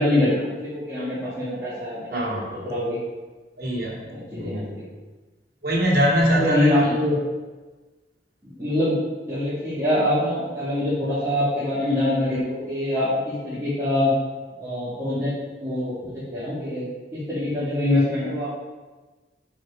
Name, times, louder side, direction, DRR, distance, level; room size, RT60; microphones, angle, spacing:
voice 1, 0.0-3.0 4.1-4.8 6.3-7.2 8.6-8.9 9.3-14.1 14.6-15.3 15.6-16.9 17.3-18.5, left 1 dB, 15° right, -15 dB, 2.7 m, -24 dB
voice 2, 2.1-2.5 3.6-4.0 4.4-4.7 5.6-6.9, equal, 55° right, -5 dB, 2.8 m, -22 dB
9.0 x 5.1 x 5.1 m, 1.3 s
head